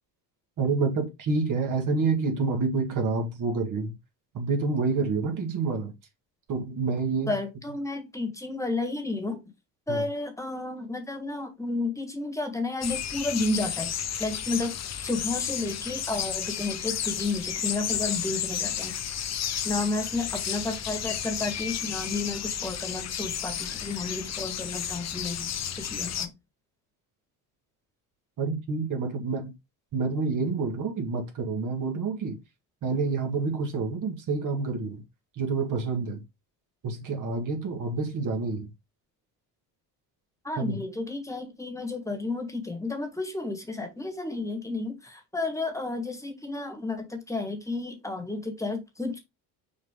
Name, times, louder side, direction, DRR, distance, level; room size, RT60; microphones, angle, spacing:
voice 1, 0.6-4.0 4.3-5.9 6.5-7.3 9.9-10.0 28.4-29.5 29.9-32.4 32.8-35.0 35.4-36.2 36.8-38.7 40.6-40.8, right 4 dB, 55° right, 1.9 m, -28 dB
voice 2, 7.3-9.5 9.9-13.9 14.2-18.9 19.6-25.5 25.8-26.3 40.4-49.2, left 2 dB, 10° left, 1.6 m, -32 dB
sound 1, 12.8-26.3, left 9 dB, 40° left, 0.9 m, -32 dB
6.1 x 4.1 x 3.7 m
cardioid pair, 115°, 39 cm